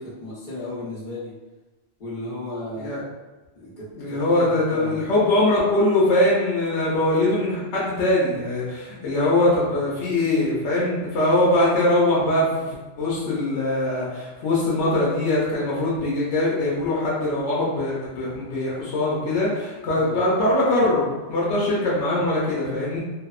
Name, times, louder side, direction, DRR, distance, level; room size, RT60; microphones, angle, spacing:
voice 1, 0.0-1.3 2.0-2.9 3.5-5.0 19.9-20.2, left 2 dB, 45° left, -9 dB, 1.1 m, -35 dB
voice 2, 3.9-23.0, left 1 dB, 80° left, -6 dB, 0.9 m, -22 dB
2.7 x 2.0 x 2.3 m, 1.2 s
omnidirectional pair, 1.2 m